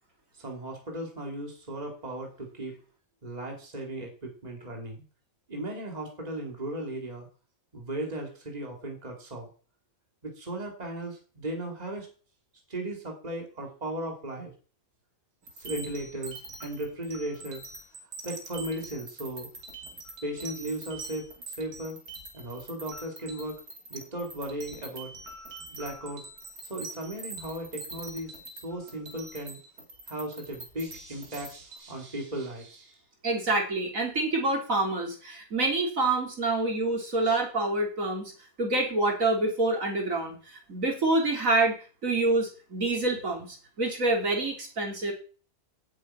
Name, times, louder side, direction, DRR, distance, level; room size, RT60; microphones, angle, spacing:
voice 1, 0.3-2.8 3.2-5.0 5.5-7.3 7.7-9.5 10.2-12.1 12.7-14.5 15.6-17.6 18.2-19.5 20.2-22.0 22.3-23.6 23.9-25.1 25.7-26.3 26.6-28.3 28.6-29.6 30.1-33.0 37.2-37.3, right 1 dB, 25° right, 1 dB, 3.0 m, -36 dB
sound 1, 15.4-31.8, right 3 dB, 85° right, 3.0 m, -44 dB
voice 2, 33.2-38.3 38.6-41.8 42.0-45.1, right 2 dB, 60° right, 1 dB, 3.7 m, -27 dB
9.3 x 7.5 x 9.0 m, 0.39 s
omnidirectional pair, 1.5 m